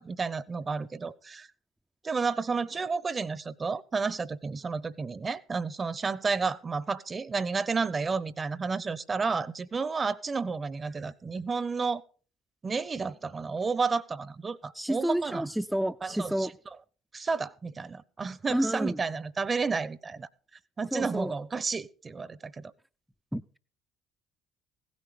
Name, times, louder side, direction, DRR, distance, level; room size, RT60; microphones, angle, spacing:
voice 1, 0.0-1.5 2.0-12.0 12.6-15.5 16.0-16.3 17.1-20.3 20.8-22.7, right 4 dB, 30° right, 0.9 m, -31 dB
voice 2, 14.7-16.5 18.5-19.0 20.9-21.3 23.3-23.4, right 1 dB, 5° right, 0.5 m, -29 dB
16.0 x 9.6 x 5.1 m
hypercardioid pair, 55°, 0 cm